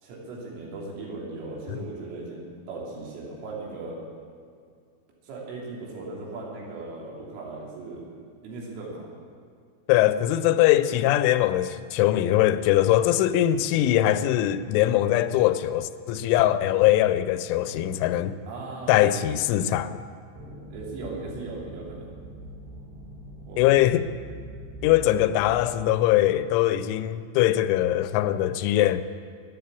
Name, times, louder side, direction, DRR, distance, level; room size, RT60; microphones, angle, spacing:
voice 1, 0.0-4.0 5.2-8.1 8.4-9.1 18.5-19.4 20.7-22.1 23.5-23.8, right 3 dB, 85° right, 5.5 m, -38 dB
voice 2, 9.9-18.4 18.9-20.0 23.6-24.1 24.8-29.0, left 13 dB, 85° left, 3.0 m, -22 dB
sound 1, 20.3-25.9, equal, 65° right, 3.7 m, -42 dB
13.5 x 10.5 x 8.3 m
omnidirectional pair, 5.6 m